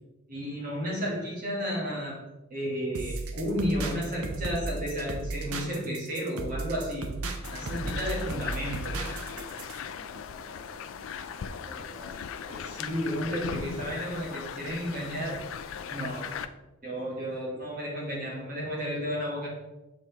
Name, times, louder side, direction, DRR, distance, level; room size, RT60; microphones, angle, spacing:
voice 1, 0.3-2.2 2.5-7.1 7.5-8.9 12.5-15.5 15.9-16.4 16.8-19.5, equal, 40° right, -4 dB, 1.8 m, -32 dB
sound 1, 2.9-9.8, right 3 dB, 85° right, 0.8 m, -35 dB
voice 2, 4.0-4.8 7.4-8.0 9.3-12.2 16.2-16.5 17.0-17.5, left 1 dB, 10° right, -7 dB, 1.2 m, -52 dB
sound 2, 7.4-16.5, left 7 dB, 65° left, 0.3 m, -38 dB
6.9 x 4.1 x 3.4 m, 1.0 s
head